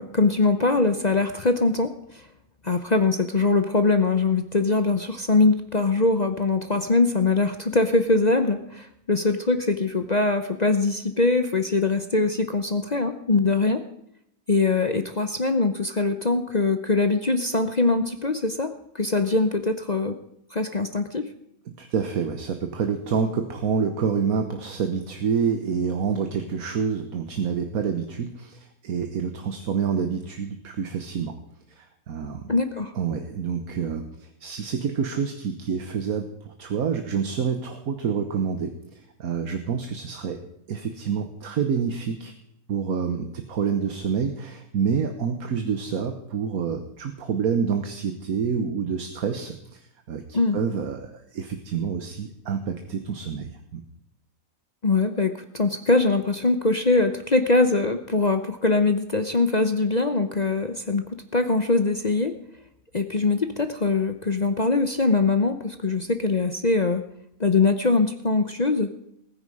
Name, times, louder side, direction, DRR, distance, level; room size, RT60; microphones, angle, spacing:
voice 1, 0.0-2.3 2.6-13.8 14.5-20.2 20.5-21.3 32.5-32.9 50.3-50.6 54.8-62.4 62.9-67.0 67.4-68.9, left 3 dB, 35° left, 8 dB, 0.9 m, -22 dB
voice 2, 21.7-31.4 31.7-32.5 32.9-40.4 40.7-42.3 42.7-49.8 50.1-53.8, right 6 dB, 75° right, 7 dB, 1.6 m, -28 dB
20.0 x 9.6 x 4.9 m, 0.77 s
omnidirectional pair, 1.5 m